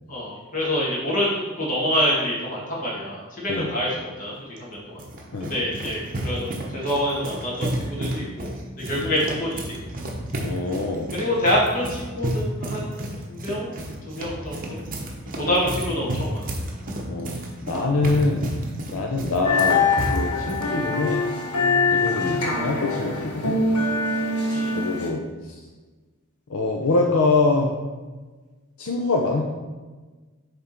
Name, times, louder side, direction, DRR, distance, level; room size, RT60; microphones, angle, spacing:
voice 1, 0.1-4.3 4.6-5.0 5.4-8.5 8.9-9.6 11.1-13.7 14.1-14.8 15.4-16.5 24.5-24.7, equal, 35° left, -6 dB, 2.1 m, -26 dB
sound 1, 4.6-20.7, right 1 dB, 40° right, 0.8 m, -31 dB
voice 2, 10.4-11.1 15.4-15.6 16.0-16.2 17.1-18.4 18.9-21.2 21.9-23.6 24.7-25.6 26.5-27.8 28.8-29.4, left 3 dB, 70° left, 0 dB, 0.6 m, -24 dB
sound 2, 19.4-25.1, left 3 dB, 85° left, 1.2 m, -23 dB
7.5 x 3.6 x 4.4 m, 1.3 s
head